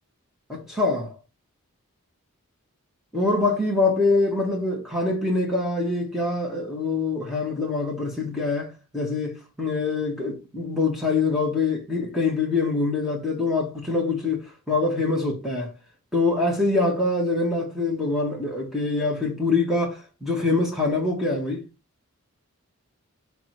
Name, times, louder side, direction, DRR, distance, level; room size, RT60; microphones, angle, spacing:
voice 1, 0.5-1.2 3.1-15.7 16.1-21.6, left 3 dB, ahead, 1.5 m, -24 dB
6.1 x 3.5 x 4.6 m
head